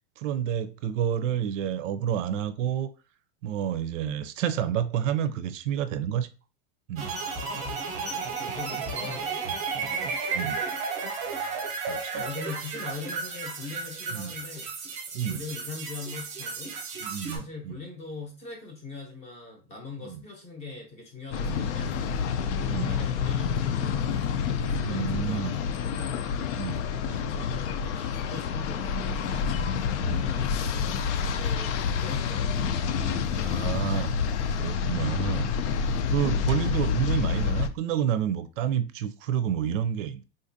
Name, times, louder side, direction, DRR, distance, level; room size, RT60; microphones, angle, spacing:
voice 1, 0.2-2.9 3.4-6.3 6.9-7.1 9.8-10.1 10.3-10.6 11.9-12.3 14.1-14.3 15.1-15.4 17.0-17.8 20.0-20.2 21.4-21.7 22.7-22.9 24.8-25.6 26.5-26.8 30.0-30.2 33.3-34.1 34.6-35.5 36.1-40.2, right 9 dB, 80° right, 0.5 m, -29 dB
sound 1, 7.0-17.4, right 4 dB, 20° right, 0.7 m, -33 dB
voice 2, 7.2-9.7 11.2-11.6 12.2-14.7 15.3-16.8 17.3-22.1 22.7-24.2 24.6-25.7 25.9-26.6 27.0-29.5 29.9-33.6, left 4 dB, 20° left, 0.7 m, -42 dB
sound 2, 21.3-37.7, left 6 dB, 65° left, 0.5 m, -28 dB
3.8 x 2.5 x 2.6 m
supercardioid pair, 165°, 37 cm